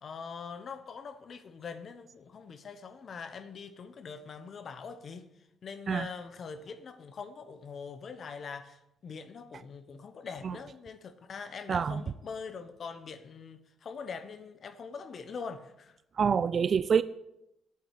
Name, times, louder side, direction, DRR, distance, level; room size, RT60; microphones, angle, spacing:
voice 1, 0.0-5.3 5.6-16.0, left 5 dB, 50° left, 1.1 m, -43 dB
voice 2, 11.7-12.0 16.2-17.0, right 6 dB, 50° right, 0.4 m, -26 dB
8.5 x 7.9 x 8.6 m
cardioid pair, 90°, 0 cm